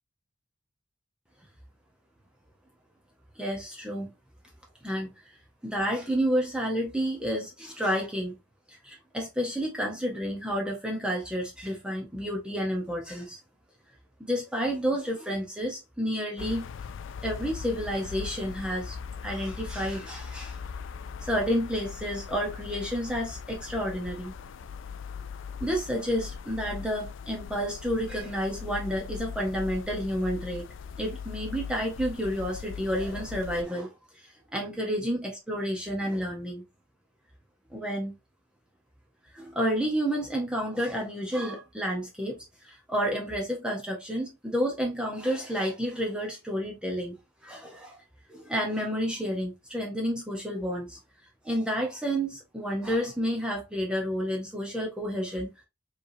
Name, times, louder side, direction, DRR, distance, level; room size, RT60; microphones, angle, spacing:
voice 1, 3.4-4.1 4.8-5.3 5.6-8.4 8.7-13.4 14.2-16.6 17.2-19.0 19.2-20.6 21.2-24.3 25.6-30.7 31.0-36.6 37.7-38.1 39.3-48.0 48.3-51.0 51.4-55.5, equal, 5° right, 0.8 m, -30 dB
sound 1, 16.4-33.6, left 6 dB, 60° left, 0.3 m, -40 dB
5.1 x 3.1 x 2.7 m
head